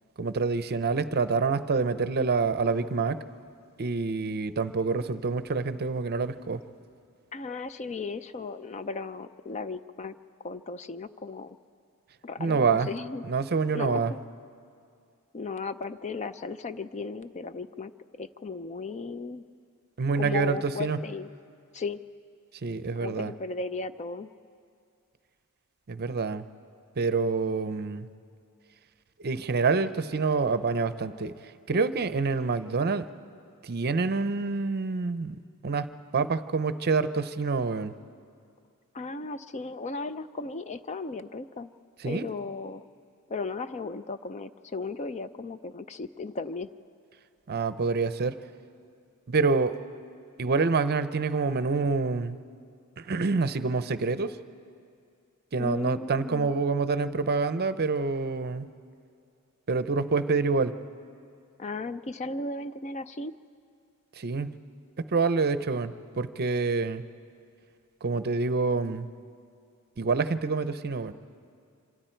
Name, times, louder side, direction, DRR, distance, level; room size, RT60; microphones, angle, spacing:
voice 1, 0.2-3.2 3.8-6.6 12.4-12.9 13.2-14.1 20.0-21.0 22.6-23.3 25.9-26.4 27.0-28.1 29.2-31.3 31.7-33.1 33.6-35.4 35.6-37.9 42.0-42.3 47.5-48.4 49.3-49.8 50.4-52.4 53.0-54.4 55.5-58.7 59.7-60.7 64.2-64.5 65.0-67.0 68.0-69.1 70.0-71.1, right 4 dB, 45° right, 12 dB, 0.6 m, -27 dB
voice 2, 7.3-10.1 10.4-11.6 12.2-13.2 13.7-14.2 15.3-17.9 18.2-19.4 20.1-21.3 21.7-22.0 23.0-24.3 38.9-41.7 42.0-42.8 43.3-46.7 55.6-56.5 61.6-63.3, left 3 dB, 30° left, 12 dB, 0.4 m, -36 dB
26.5 x 25.5 x 4.5 m, 2.4 s
head